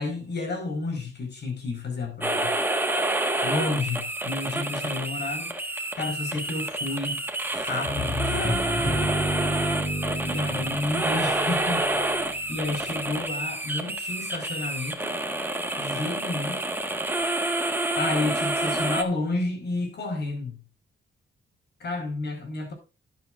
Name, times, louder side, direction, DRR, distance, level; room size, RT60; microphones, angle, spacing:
voice 1, 0.0-2.5 3.4-5.5 6.0-7.2 7.5-9.2 10.2-15.2 15.8-16.6 18.0-20.6 21.8-22.7, left 3 dB, 60° left, 4.8 m, -31 dB
sound 1, 2.2-19.0, right 1 dB, 10° right, 1.5 m, -28 dB
sound 2, 7.9-12.7, left 1 dB, 25° left, 3.7 m, -30 dB
11.5 x 11.0 x 2.5 m
cardioid pair, 115°, 20 cm